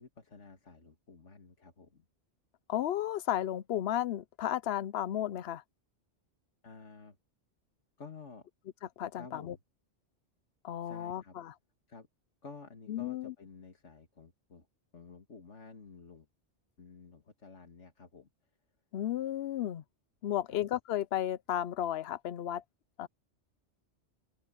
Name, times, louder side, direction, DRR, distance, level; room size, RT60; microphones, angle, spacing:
voice 1, 0.0-2.0 6.6-7.2 8.0-8.5 9.1-9.6 10.8-11.4 11.9-12.1 12.4-14.7 14.9-16.3 16.8-18.3 20.5-20.6, left 4 dB, 80° left, 2.5 m, -52 dB
voice 2, 2.7-5.6 9.0-9.6 10.6-11.5 12.9-13.3 18.9-19.8 20.2-22.6 23.0-23.1, left 11 dB, 65° left, 0.8 m, -33 dB
omnidirectional pair, 1.2 m